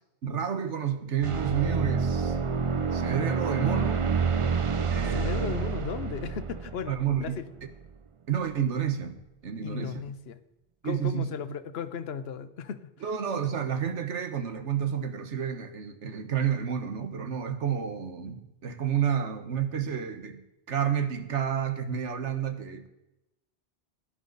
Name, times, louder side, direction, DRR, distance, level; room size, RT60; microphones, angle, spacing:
voice 1, 0.2-2.4 2.9-4.0 4.9-5.6 6.9-7.4 8.3-9.2 9.4-10.1 10.8-11.3 13.0-20.4 20.7-22.9, right 8 dB, 90° right, 9 dB, 1.5 m, -30 dB
sound 1, 1.2-7.9, right 5 dB, 35° right, 0.5 m, -28 dB
voice 2, 5.1-7.4 9.6-10.4 10.8-12.9, left 7 dB, 65° left, 11 dB, 1.0 m, -36 dB
16.5 x 11.0 x 4.0 m, 0.92 s
omnidirectional pair, 1.2 m